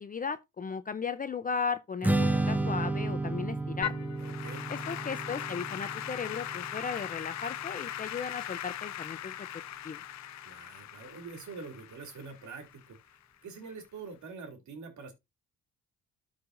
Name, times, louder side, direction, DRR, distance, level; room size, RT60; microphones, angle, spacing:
voice 1, 0.0-3.9 4.7-9.3 9.8-10.0, left 5 dB, 30° left, 0.6 m, -36 dB
Strum, 2.0-8.3, right 2 dB, 5° right, 0.7 m, -32 dB
Applause / Keyboard (musical), 3.8-13.1, left 12 dB, 65° left, 0.8 m, -39 dB
voice 2, 4.2-4.7 10.4-13.2 13.4-15.1, right 4 dB, 70° right, 2.7 m, -45 dB
13.0 x 4.8 x 2.6 m
cardioid pair, 90°, 30 cm